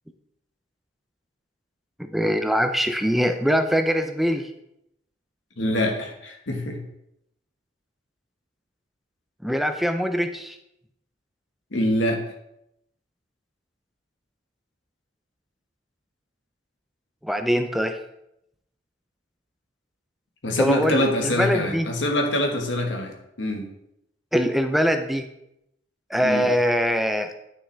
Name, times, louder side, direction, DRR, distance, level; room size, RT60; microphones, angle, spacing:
voice 1, 2.0-4.5 9.4-10.6 17.2-18.0 20.6-21.9 24.3-25.3 26.1-27.3, equal, ahead, 7 dB, 0.4 m, -23 dB
voice 2, 5.6-6.8 11.7-12.2 20.4-23.6 26.2-26.5, left 1 dB, 80° left, 3 dB, 1.3 m, -24 dB
9.6 x 5.9 x 3.3 m, 0.80 s
head